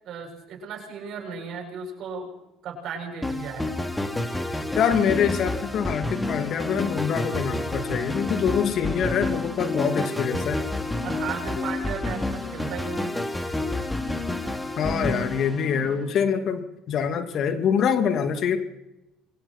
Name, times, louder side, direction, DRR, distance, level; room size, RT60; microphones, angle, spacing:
voice 1, 0.0-2.3 2.6-3.7 11.0-13.1, right 5 dB, 60° right, 1 dB, 7.6 m, -35 dB
sound 1, 3.2-16.1, left 2 dB, 10° left, 3.4 m, -29 dB
voice 2, 4.7-10.6 14.8-18.6, left 7 dB, 55° left, 7 dB, 2.8 m, -25 dB
28.0 x 22.5 x 4.6 m, 0.91 s
hypercardioid pair, 65°, 0 cm